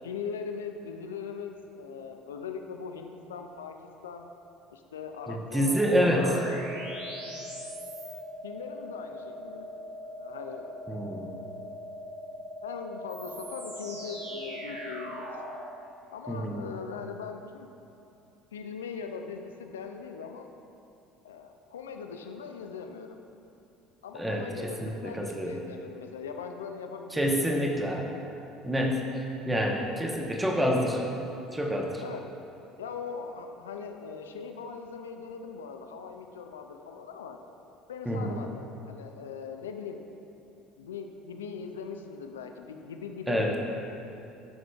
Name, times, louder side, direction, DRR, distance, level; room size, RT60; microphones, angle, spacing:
voice 1, 0.0-3.7 4.0-4.3 4.7-5.8 6.1-6.4 8.4-9.7 10.1-10.7 12.6-15.3 16.1-17.7 18.5-20.5 21.2-23.2 24.0-27.8 32.0-32.2 32.8-37.4 37.9-40.0 40.8-43.6, left 6 dB, 85° left, 5 dB, 0.3 m, -40 dB
voice 2, 5.3-6.3 10.9-11.3 16.3-16.6 24.1-25.5 27.1-28.1 28.6-31.0 31.5-32.0 38.1-38.3 43.3-43.5, equal, 15° right, 0 dB, 0.9 m, -27 dB
sound 1, 5.7-15.6, equal, 75° right, 1.4 m, -40 dB
12.0 x 5.0 x 2.3 m, 2.8 s
hypercardioid pair, 65°, 0 cm